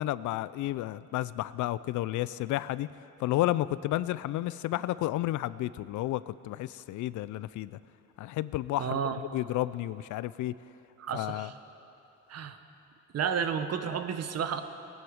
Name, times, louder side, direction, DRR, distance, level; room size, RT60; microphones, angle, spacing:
voice 1, 0.0-2.9 3.2-7.8 8.2-10.5 11.1-11.5, left 15 dB, 75° left, 17 dB, 0.4 m, -31 dB
voice 2, 8.8-9.2 11.0-11.5 12.3-12.6 13.1-14.6, right 7 dB, 55° right, 9 dB, 1.0 m, -31 dB
19.5 x 9.5 x 5.0 m, 2.9 s
cardioid pair, 90°, 30 cm